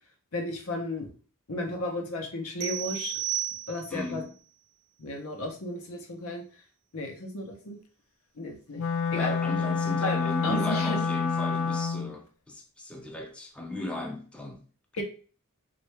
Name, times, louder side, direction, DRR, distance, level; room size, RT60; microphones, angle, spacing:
voice 1, 0.3-1.1 1.5-3.2 3.7-4.2 5.0-6.4 6.9-7.8 8.4-8.8 9.1-9.3 10.0-11.0 14.9-15.0, left 2 dB, 90° left, 0.9 m, -33 dB
sound 1, 2.6-4.1, right 13 dB, 85° right, 0.5 m, -33 dB
voice 2, 3.9-4.4 9.1-14.7 15.0-15.1, left 1 dB, 5° left, 0.4 m, -36 dB
Wind instrument woodwind instrument, 8.7-12.1, left 5 dB, 70° left, 0.4 m, -28 dB
3.2 x 2.5 x 3.2 m
head